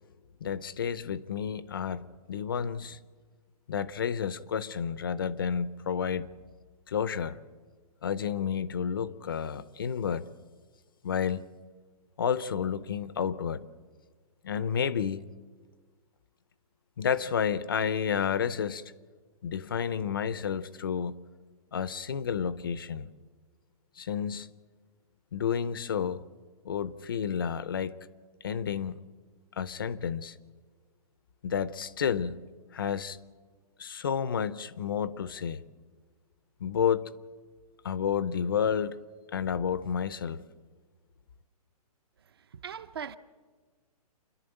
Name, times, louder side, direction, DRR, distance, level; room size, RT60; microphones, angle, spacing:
voice 1, 0.4-3.0 3.7-6.3 6.9-7.4 8.0-10.3 11.0-11.5 12.2-13.7 14.4-15.3 17.0-18.9 19.4-21.2 21.7-23.1 24.0-24.5 25.3-26.2 26.6-28.0 28.4-29.0 29.6-30.4 31.4-32.4 32.7-33.2 33.8-35.6 36.6-37.1 37.8-39.0 39.3-40.4, left 7 dB, 35° left, 0.5 m, -30 dB
voice 2, 42.4-43.2, right 7 dB, 40° right, 0.6 m, -40 dB
28.5 x 11.5 x 8.9 m
hypercardioid pair, 175°, 20 cm